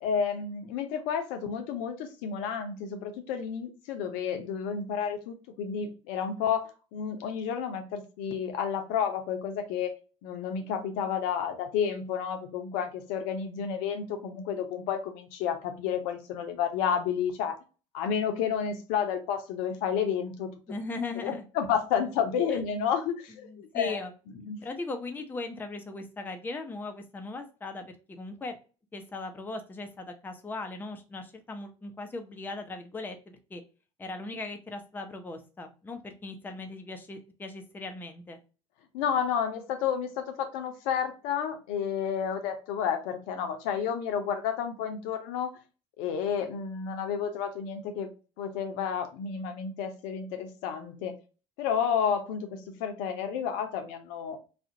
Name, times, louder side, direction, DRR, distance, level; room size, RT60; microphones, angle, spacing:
voice 1, 0.0-9.9 10.2-17.5 17.9-20.5 21.2-24.0 24.5-24.6 38.9-45.5 46.0-48.1 48.4-51.1 51.6-54.4, left 7 dB, 65° left, 6 dB, 0.5 m, -31 dB
voice 2, 20.7-21.4 22.5-22.6 23.3-24.1 24.6-28.6 28.9-33.6 34.0-38.4, left 3 dB, 10° left, 5 dB, 0.4 m, -38 dB
2.4 x 2.1 x 2.6 m, 0.34 s
hypercardioid pair, 60°, 15 cm